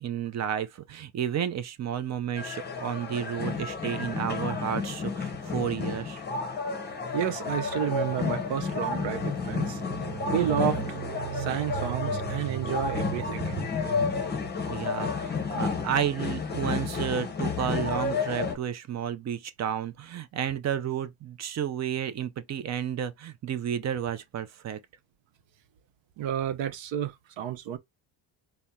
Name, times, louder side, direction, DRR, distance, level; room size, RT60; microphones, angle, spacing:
voice 1, 0.0-6.2 14.7-24.8, right 9 dB, 35° right, 0.4 m, -31 dB
sound 1, 2.4-18.6, left 5 dB, 20° left, 0.8 m, -31 dB
voice 2, 7.1-14.1 26.2-27.8, right 9 dB, 65° right, 0.7 m, -31 dB
4.2 x 2.1 x 3.5 m
cardioid pair, 155°, 49 cm